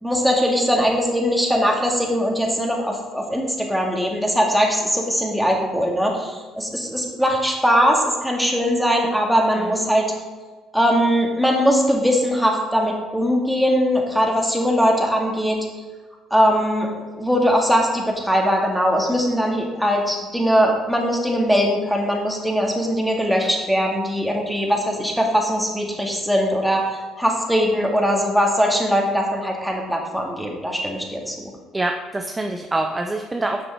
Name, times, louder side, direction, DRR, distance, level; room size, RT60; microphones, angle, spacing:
voice 1, 0.0-10.1 10.7-15.6 16.3-16.9 17.2-26.9 27.2-31.5, equal, ahead, 0 dB, 2.2 m, -20 dB
voice 2, 31.7-33.6, right 2 dB, 20° right, 3 dB, 0.7 m, -25 dB
9.2 x 6.2 x 4.7 m, 1.3 s
hypercardioid pair, 55°, 0 cm